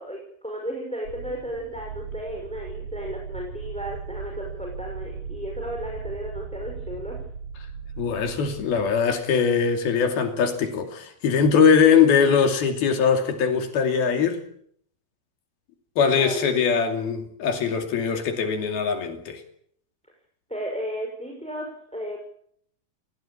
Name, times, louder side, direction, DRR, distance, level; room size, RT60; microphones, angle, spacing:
voice 1, 0.0-7.2 16.2-16.5 20.5-22.2, equal, ahead, 5.6 m, -34 dB
sound 1, 1.0-9.2, right 5 dB, 70° right, 6.6 m, -37 dB
voice 2, 8.0-14.4 16.0-19.4, left 6 dB, 80° left, 4.5 m, -21 dB
29.5 x 16.5 x 8.7 m
omnidirectional pair, 4.3 m